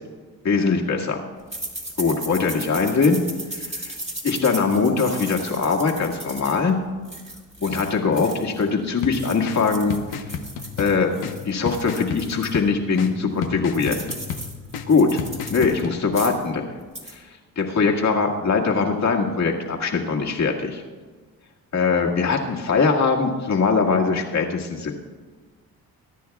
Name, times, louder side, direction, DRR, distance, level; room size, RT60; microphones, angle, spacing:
voice 1, 0.4-1.2 2.0-3.2 3.5-4.0 4.2-6.8 7.6-10.0 10.8-14.0 14.9-15.2 15.5-16.7 17.1-17.3 17.6-20.8 21.7-25.0, left 4 dB, 45° left, 0 dB, 1.9 m, -21 dB
sound 1, 1.5-8.7 9.0-12.6 13.0-13.1 13.4-15.8 16.1-16.5 16.8-17.1, right 1 dB, 20° right, 2.2 m, -36 dB
sound 2, 9.0-16.0, left 6 dB, 85° left, 1.0 m, -34 dB
22.0 x 10.0 x 2.4 m, 1.4 s
cardioid pair, 90°, 37 cm